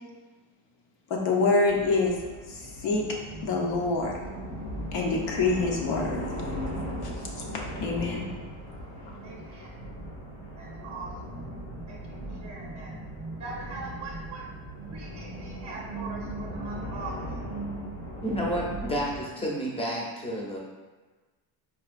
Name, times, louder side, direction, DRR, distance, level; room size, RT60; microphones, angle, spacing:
voice 1, 1.1-2.1 2.5-3.0 3.4-4.2 4.9-6.2 7.0-7.1 7.8-8.3, left 3 dB, 65° left, -1 dB, 0.8 m, -26 dB
sound 1, 1.7-19.2, equal, 85° left, 1.4 m, -38 dB
voice 2, 9.2-9.7 10.6-11.3 11.9-12.0 12.3-12.9 13.4-14.4 14.9-17.1, right 3 dB, 35° right, -5 dB, 0.6 m, -41 dB
voice 3, 18.2-20.6, equal, 15° left, -2 dB, 0.6 m, -30 dB
4.5 x 2.3 x 2.5 m, 1.3 s
cardioid pair, 120°, 47 cm